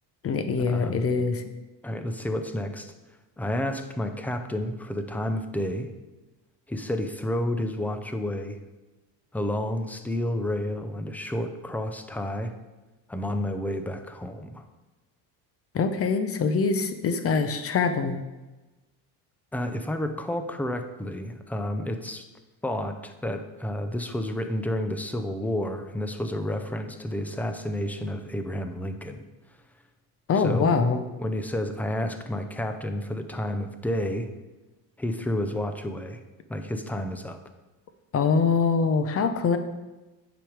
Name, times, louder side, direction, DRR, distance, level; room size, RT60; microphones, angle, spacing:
voice 1, 0.2-1.4 15.7-18.2 30.3-31.0 38.1-39.6, left 5 dB, 35° left, 9 dB, 0.8 m, -24 dB
voice 2, 1.8-2.9 3.4-5.9 6.7-8.6 9.3-12.5 13.1-14.6 19.5-22.2 22.6-29.3 30.3-30.8 31.2-34.3 35.0-36.2 36.5-37.4, left 1 dB, 5° left, 7 dB, 0.5 m, -30 dB
9.1 x 5.2 x 5.0 m, 1.1 s
cardioid pair, 130°, 41 cm